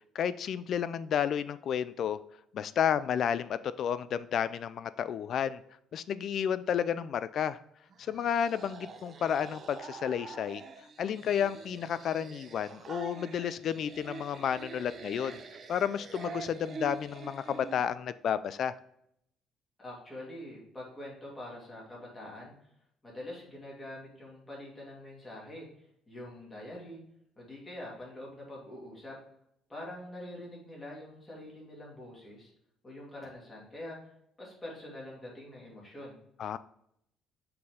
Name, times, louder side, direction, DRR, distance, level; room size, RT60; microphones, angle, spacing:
voice 1, 0.1-2.2 2.5-5.6 5.9-7.6 8.0-10.6 11.0-15.4 15.7-18.7 36.4-36.6, left 8 dB, 50° left, 15 dB, 0.3 m, -31 dB
sound 1, 7.9-17.9, right 5 dB, 40° right, 0.7 m, -46 dB
voice 2, 19.8-22.5 23.0-25.7 26.1-27.0 27.4-29.1 29.7-32.5 32.8-34.0 34.4-36.2, left 1 dB, 15° left, -4 dB, 2.6 m, -45 dB
6.6 x 4.2 x 3.6 m, 0.73 s
cardioid pair, 135°, 0 cm